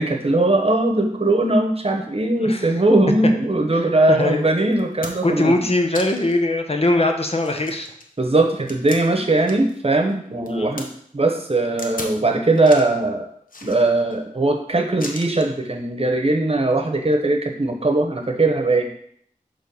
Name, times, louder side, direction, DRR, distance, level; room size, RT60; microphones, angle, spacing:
voice 1, 0.0-5.6 8.2-10.9 11.1-13.2 13.6-18.8, right 2 dB, 45° right, 3 dB, 1.0 m, -19 dB
voice 2, 2.4-2.7 3.7-4.4 5.2-7.9 10.5-10.7, left 2 dB, 45° left, 4 dB, 0.9 m, -21 dB
sound 1, 4.2-4.3 4.7-5.4 5.9-6.4 6.9-7.0 7.4-9.8 10.1-10.9 11.8-12.2 12.5-13.0 13.5-14.2 15.0-15.5 16.6-16.8, left 2 dB, 80° left, 0.9 m, -37 dB
6.5 x 3.3 x 5.4 m, 0.65 s
wide cardioid pair, 55°, 14 cm